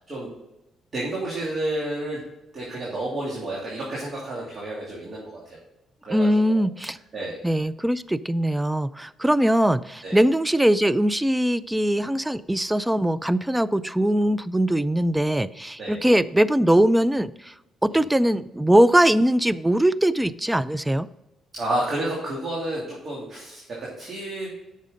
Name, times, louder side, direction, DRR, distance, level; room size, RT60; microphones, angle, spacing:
voice 1, 0.9-2.2 2.5-5.6 6.0-6.7 7.1-7.4 10.0-10.2 15.8-16.0 17.9-18.0 21.5-24.5, right 1 dB, 45° right, -5 dB, 2.8 m, -30 dB
voice 2, 6.1-7.0 7.4-17.5 17.8-21.1, right 1 dB, 10° right, 17 dB, 0.4 m, -21 dB
8.8 x 6.5 x 3.9 m, 0.95 s
cardioid pair, 90°, 0 cm